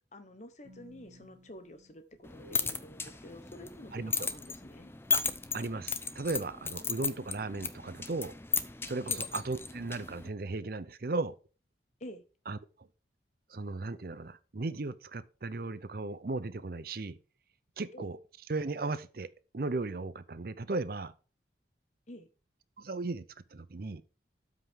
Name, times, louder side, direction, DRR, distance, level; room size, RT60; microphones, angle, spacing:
voice 1, 0.1-4.9 9.1-9.2 12.0-12.2 17.9-18.1 22.1-22.3, left 1 dB, 40° left, 1.1 m, -49 dB
sound 1, 0.6-2.9, equal, 70° right, 2.0 m, -56 dB
sound 2, 2.2-10.3, left 5 dB, 15° left, 0.5 m, -36 dB
voice 2, 3.9-4.3 5.1-5.2 5.5-8.3 8.9-11.3 12.5-12.6 13.5-17.2 17.8-18.2 18.5-19.3 19.5-21.1 22.8-23.2 23.5-24.0, right 3 dB, 50° right, 0.6 m, -36 dB
12.5 x 5.7 x 3.6 m
head